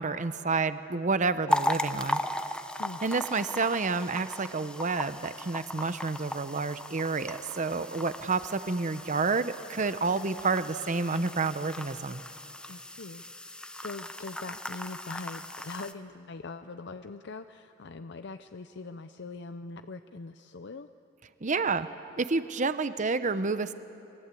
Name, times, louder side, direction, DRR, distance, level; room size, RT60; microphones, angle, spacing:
voice 1, 0.0-2.2 3.0-12.2 21.4-21.9 22.2-23.7, right 4 dB, 40° right, 12 dB, 0.7 m, -29 dB
sound 1, 1.5-15.9, left 1 dB, 5° left, 0.7 m, -37 dB
voice 2, 12.7-20.9, left 3 dB, 60° left, 9 dB, 0.6 m, -42 dB
28.0 x 22.5 x 8.4 m, 3.0 s
head